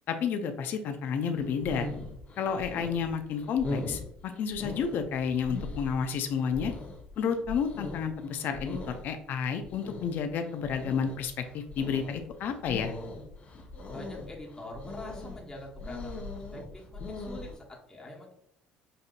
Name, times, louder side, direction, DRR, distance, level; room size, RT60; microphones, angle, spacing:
voice 1, 0.1-1.9 2.4-6.7 7.2-12.9, left 6 dB, 65° left, 7 dB, 0.4 m, -31 dB
sound 1, 1.4-17.6, left 2 dB, 45° left, 0.9 m, -40 dB
voice 2, 13.9-18.3, left 1 dB, 15° left, -2 dB, 1.2 m, -45 dB
5.3 x 2.6 x 2.5 m, 0.70 s
supercardioid pair, 80°, 4 cm